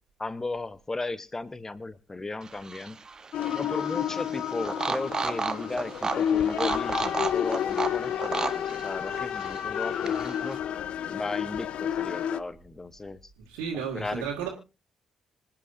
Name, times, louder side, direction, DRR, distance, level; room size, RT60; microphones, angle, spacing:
voice 1, 0.2-3.0 3.5-10.6 11.1-13.3 13.7-14.2, left 2 dB, 20° left, 17 dB, 1.1 m, -36 dB
sound 1, 2.4-10.6, right 4 dB, 30° right, 1.0 m, -34 dB
sound 2, 3.3-12.4, left 9 dB, 55° left, 0.6 m, -30 dB
voice 2, 13.5-14.5, right 7 dB, 70° right, -2 dB, 2.2 m, -32 dB
26.0 x 8.9 x 2.7 m, 0.29 s
figure-of-eight pair, 40°, 2 cm